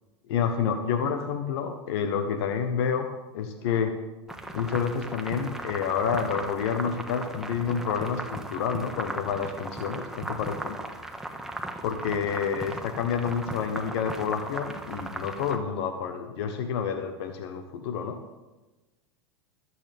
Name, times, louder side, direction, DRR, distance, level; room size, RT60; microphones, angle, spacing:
voice 1, 0.3-3.1 3.3-3.9 4.5-10.8 11.8-18.2, left 7 dB, 60° left, 7 dB, 1.2 m, -29 dB
sound 1, 4.3-15.6, right 1 dB, 5° right, 1.5 m, -37 dB
22.0 x 8.4 x 3.6 m, 1.1 s
hypercardioid pair, 95°, 15 cm